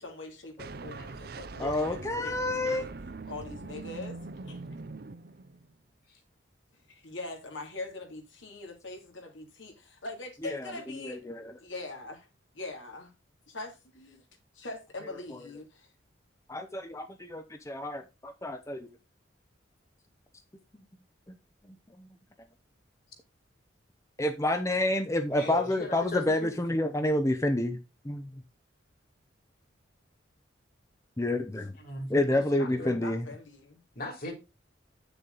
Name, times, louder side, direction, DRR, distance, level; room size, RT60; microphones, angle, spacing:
voice 1, 0.0-2.9 3.3-4.2 4.4-4.6 6.9-11.2 11.6-12.3 12.5-13.1 13.5-14.2 14.5-15.9 32.5-33.8, left 3 dB, 80° left, 2.7 m, -42 dB
sound 1, 0.6-5.7, right 3 dB, 50° right, 0.6 m, -42 dB
voice 2, 1.6-2.9 10.4-10.7 11.0-11.5 16.5-18.9 22.0-22.1 24.2-27.8 28.0-28.3 31.2-31.7 32.1-33.3, left 1 dB, 15° left, 0.6 m, -29 dB
voice 3, 25.3-26.5 31.8-32.9 33.9-34.3, left 1 dB, 50° left, 3.0 m, -38 dB
9.0 x 6.8 x 3.9 m
head